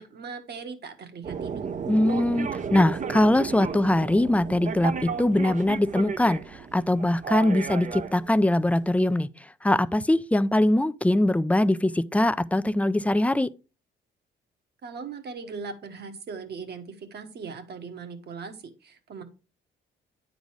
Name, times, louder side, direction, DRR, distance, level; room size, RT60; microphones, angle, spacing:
voice 1, 0.0-1.6 14.8-19.2, right 5 dB, 55° right, 1.5 m, -39 dB
sound 1, 1.2-9.1, right 6 dB, 40° right, 0.7 m, -34 dB
voice 2, 1.9-6.4 6.7-9.3 9.6-13.5, left 1 dB, 5° left, 0.4 m, -22 dB
9.4 x 4.0 x 4.8 m
cardioid pair, 90°, 20 cm